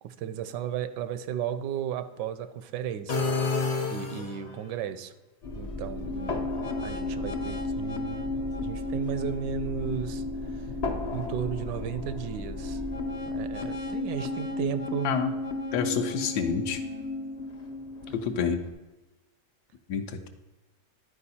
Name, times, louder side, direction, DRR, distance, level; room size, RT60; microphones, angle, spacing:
voice 1, 0.0-3.3 3.9-5.1 5.6-6.5 6.8-10.7 11.1-12.8 13.3-15.1, right 9 dB, 80° right, 11 dB, 1.2 m, -34 dB
sound 1, 3.1-4.7, left 4 dB, 45° left, 0.8 m, -29 dB
sound 2, 5.4-18.7, left 2 dB, 60° left, 0.4 m, -33 dB
voice 2, 15.7-16.8 18.1-18.6 19.9-20.3, left 7 dB, 75° left, 7 dB, 1.2 m, -28 dB
11.5 x 4.7 x 4.2 m, 1.1 s
omnidirectional pair, 1.8 m